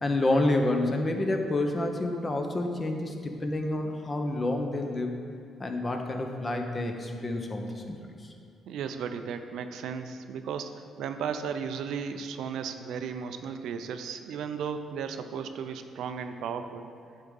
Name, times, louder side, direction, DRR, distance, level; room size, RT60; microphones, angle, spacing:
voice 1, 0.0-5.2 5.6-8.3, left 2 dB, 30° left, 4 dB, 0.8 m, -29 dB
voice 2, 8.7-16.9, right 6 dB, 80° right, 8 dB, 0.4 m, -35 dB
9.7 x 3.6 x 5.5 m, 2.4 s
cardioid pair, 90°, 0 cm